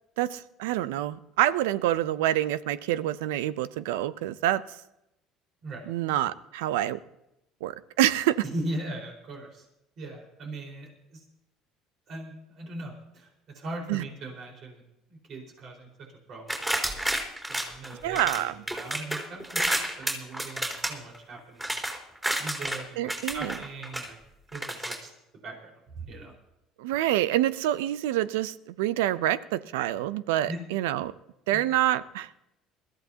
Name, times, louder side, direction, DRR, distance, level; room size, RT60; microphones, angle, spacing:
voice 1, 0.2-4.6 5.9-7.0 7.6-8.4 13.9-14.0 18.0-18.5 23.0-23.5 26.8-31.1 31.5-32.3, right 13 dB, 85° right, 17 dB, 0.5 m, -27 dB
voice 2, 8.4-9.7 10.0-11.2 12.1-14.8 15.1-17.0 17.5-21.7 22.4-23.0 23.3-24.2 24.5-25.1 25.4-26.3 30.5-30.6 31.5-31.6, right 2 dB, 55° right, 0 dB, 4.6 m, -39 dB
sound 1, 16.5-18.4 18.7-22.8 23.1-24.1 24.5-25.0, right 1 dB, 10° right, 4.0 m, -30 dB
21.5 x 14.5 x 2.8 m, 0.88 s
supercardioid pair, 85°, 0 cm